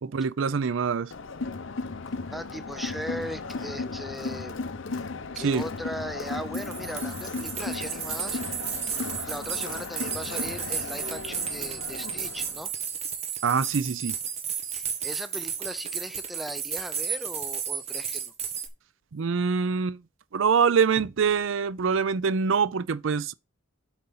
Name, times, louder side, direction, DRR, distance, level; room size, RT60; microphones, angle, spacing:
voice 1, 0.0-1.1 5.4-5.6 13.4-14.1 19.1-20.0 20.3-23.3, right 6 dB, 70° right, 0.5 m, -24 dB
Crowd, 1.1-12.7, left 4 dB, 65° left, 0.7 m, -35 dB
voice 2, 2.3-4.6 5.4-8.4 9.3-12.7 14.7-18.3, equal, ahead, 0.5 m, -38 dB
sound 1, 6.3-6.4 6.5-18.7, right 7 dB, 30° right, 1.3 m, -33 dB
7.7 x 4.4 x 5.6 m
head